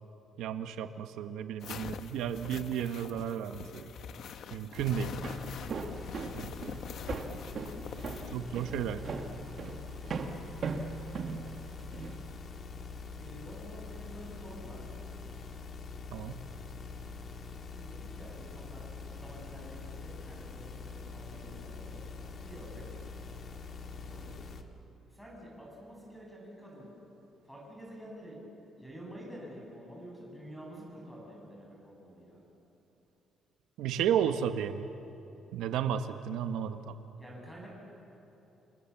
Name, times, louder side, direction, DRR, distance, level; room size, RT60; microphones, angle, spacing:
voice 1, 0.4-3.9 4.5-5.2 6.4-6.5 8.3-9.0 16.1-16.4 33.8-34.9 35.5-37.0, right 9 dB, 85° right, 8 dB, 1.1 m, -33 dB
sound 1, 1.6-8.4, left 7 dB, 50° left, 0.9 m, -44 dB
voice 2, 4.7-5.2 7.8-9.0 13.1-14.8 17.7-22.0 22.4-22.8 23.9-24.3 25.1-26.9 27.4-28.4 28.8-32.4 37.2-37.7, equal, ahead, -3 dB, 7.8 m, -49 dB
sound 2, 4.8-24.6, left 4 dB, 35° left, 1.7 m, -44 dB
Walk footsteps, 5.0-12.2, right 5 dB, 40° right, 1.8 m, -39 dB
29.0 x 28.0 x 7.3 m, 3.0 s
cardioid pair, 175°, 0 cm